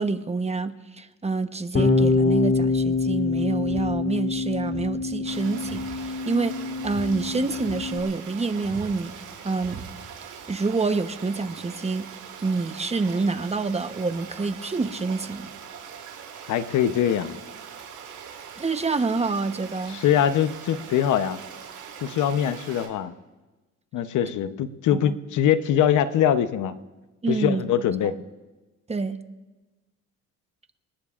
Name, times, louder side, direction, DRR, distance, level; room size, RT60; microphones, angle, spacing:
voice 1, 0.0-6.6 6.8-9.1 9.4-9.8 10.5-12.1 12.4-15.5 18.6-20.0 25.0-25.2 27.2-27.7 28.0-28.2 28.9-29.2, right 3 dB, 20° right, 9 dB, 1.0 m, -27 dB
Bass guitar, 1.7-8.0, left 3 dB, 40° left, 3.3 m, -25 dB
sound 1, 3.6-4.0 4.7-5.0 5.6-6.0 6.8-7.2 7.6-8.0 8.6-9.0 9.6-10.0, right 6 dB, 65° right, 3.5 m, -41 dB
Stream, 5.3-22.9, right 7 dB, 85° right, 4.7 m, -42 dB
voice 2, 16.5-17.4 19.9-21.4 22.0-23.1 23.9-26.7 27.3-28.2, left 10 dB, 80° left, 11 dB, 0.9 m, -23 dB
26.5 x 19.5 x 2.5 m, 1.2 s
cardioid pair, 90°, 30 cm